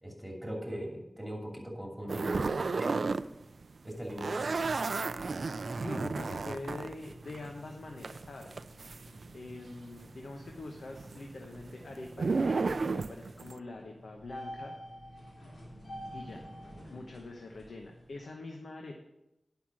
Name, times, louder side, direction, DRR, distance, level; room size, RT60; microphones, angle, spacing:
voice 1, 0.0-3.0 3.8-4.4, equal, 5° right, -1 dB, 2.6 m, -40 dB
sound 1, 2.1-3.3 3.5-9.7 10.0-13.6, right 4 dB, 75° right, 0.3 m, -33 dB
sound 2, 3.8-18.2, equal, 70° left, 3.0 m, -50 dB
voice 2, 5.8-8.6 9.3-14.7 16.1-16.5 16.9-18.9, left 2 dB, 90° left, 2 dB, 1.0 m, -44 dB
10.5 x 5.8 x 6.2 m, 0.91 s
wide cardioid pair, 60°, 0 cm